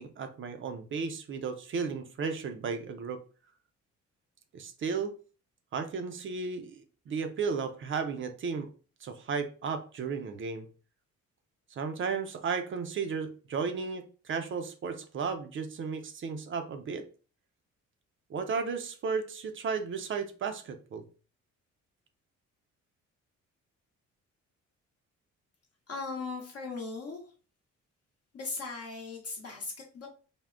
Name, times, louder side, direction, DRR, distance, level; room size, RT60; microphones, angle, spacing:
voice 1, 0.0-3.2 4.5-5.1 5.7-8.7 9.0-10.7 11.7-17.0 18.3-21.0, right 5 dB, 45° right, 8 dB, 0.4 m, -34 dB
voice 2, 25.9-27.2 28.3-30.1, left 4 dB, 55° left, 0 dB, 0.7 m, -38 dB
3.5 x 2.1 x 2.3 m, 0.38 s
cardioid pair, 90°, 30 cm